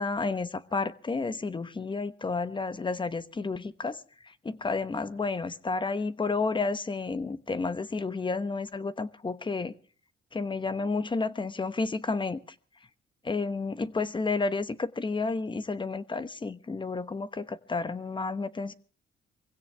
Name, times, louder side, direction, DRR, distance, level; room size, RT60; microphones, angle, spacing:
voice 1, 0.0-9.7 10.3-12.4 13.2-18.7, left 3 dB, 25° left, 1.1 m, -31 dB
23.5 x 16.0 x 3.4 m
cardioid pair, 90°, 20 cm